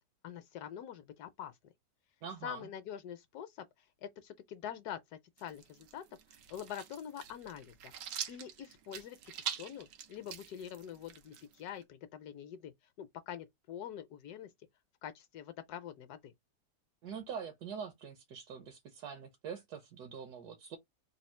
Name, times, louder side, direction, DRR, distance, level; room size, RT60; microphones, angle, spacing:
voice 1, 0.2-1.6 2.4-3.7 4.0-5.0 5.4-6.0 6.5-7.9 8.3-9.2 9.5-14.5 15.0-16.3, left 9 dB, 70° left, 1.1 m, -45 dB
voice 2, 2.2-2.7 17.0-20.8, right 7 dB, 70° right, 1.2 m, -44 dB
sound 1, 5.4-11.8, right 9 dB, 90° right, 1.4 m, -45 dB
3.5 x 2.3 x 4.2 m
omnidirectional pair, 1.8 m